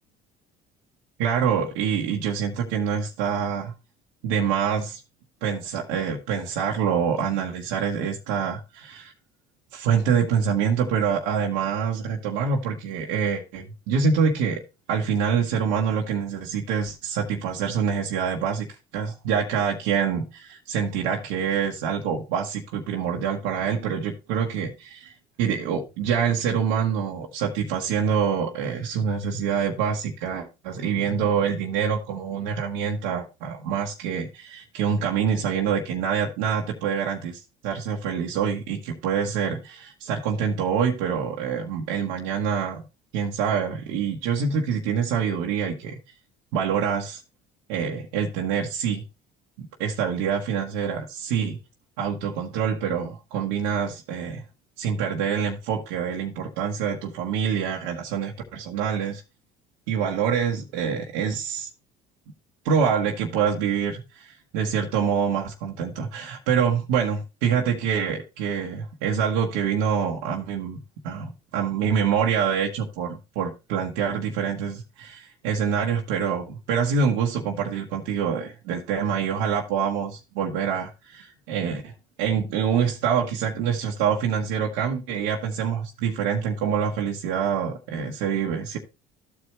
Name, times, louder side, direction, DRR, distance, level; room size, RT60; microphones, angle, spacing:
voice 1, 1.2-3.7 4.2-5.0 5.4-9.1 9.7-14.6 14.9-18.7 18.9-25.1 25.4-42.8 43.1-45.9 46.5-47.2 47.7-49.0 49.6-51.6 52.0-54.4 54.8-59.2 59.9-61.7 62.6-70.8 71.0-81.9 82.2-88.8, right 7 dB, 80° right, 1.3 m, -26 dB
13.5 x 4.7 x 3.1 m
supercardioid pair, 80°, 20 cm